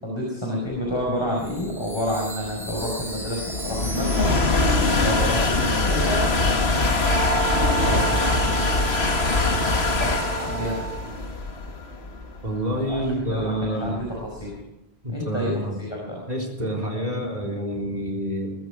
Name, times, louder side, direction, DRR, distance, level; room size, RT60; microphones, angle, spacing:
voice 1, 0.0-4.4 4.9-7.4 7.8-8.8 9.9-10.9 12.9-14.5 15.1-16.2, equal, 25° left, -2 dB, 4.8 m, -29 dB
sound 1, 1.1-14.4, left 3 dB, 80° left, 2.0 m, -23 dB
Chime, 1.3-6.9, equal, ahead, 5.7 m, -39 dB
Wind instrument woodwind instrument, 7.0-11.2, right 7 dB, 80° right, 8.0 m, -32 dB
voice 2, 12.4-13.9 15.0-15.8 16.3-18.5, equal, 40° right, 2 dB, 4.1 m, -27 dB
22.5 x 13.5 x 4.7 m, 0.96 s
omnidirectional pair, 1.1 m